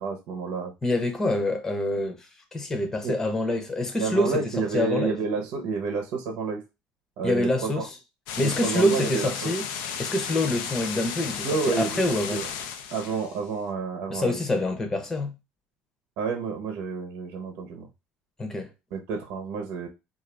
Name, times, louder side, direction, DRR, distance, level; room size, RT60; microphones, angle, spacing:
voice 1, 0.0-0.7 3.0-3.2 4.0-6.6 7.2-7.9 8.4-9.5 11.4-11.9 12.3-12.5 12.9-14.4 16.2-17.9 18.9-19.9, right 5 dB, 75° right, 0.9 m, -29 dB
voice 2, 0.8-2.3 2.5-4.4 4.7-5.2 7.2-7.9 8.4-9.6 10.0-12.4 14.1-15.3 18.4-18.7, left 1 dB, 15° left, 0.8 m, -26 dB
sound 1, 8.3-13.5, left 7 dB, 85° left, 0.6 m, -34 dB
3.8 x 2.6 x 3.3 m
cardioid pair, 120°, 3 cm